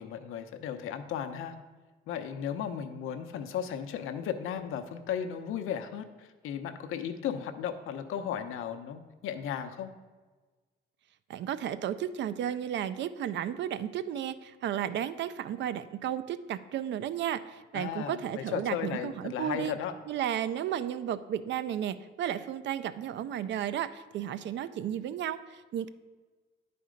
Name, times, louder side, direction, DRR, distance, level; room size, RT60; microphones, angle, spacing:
voice 1, 0.0-1.6 2.1-9.9 17.7-19.9, left 8 dB, 80° left, 7 dB, 0.7 m, -35 dB
voice 2, 11.3-19.7 20.1-25.9, right 10 dB, 60° right, 14 dB, 0.5 m, -33 dB
10.0 x 4.3 x 5.0 m, 1.3 s
cardioid pair, 120°, 21 cm